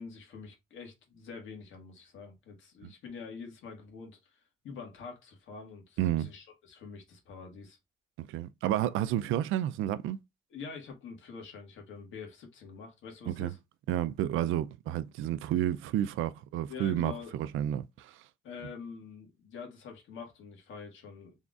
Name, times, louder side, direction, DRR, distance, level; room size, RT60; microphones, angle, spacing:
voice 1, 0.0-4.3 4.6-7.8 10.5-13.6 16.7-17.4 18.4-21.4, left 5 dB, 75° left, 1.6 m, -46 dB
voice 2, 6.0-6.3 8.2-10.2 13.3-13.5 13.9-18.1, right 12 dB, 85° right, 0.4 m, -31 dB
3.9 x 3.5 x 2.3 m
cardioid pair, 90°, 20 cm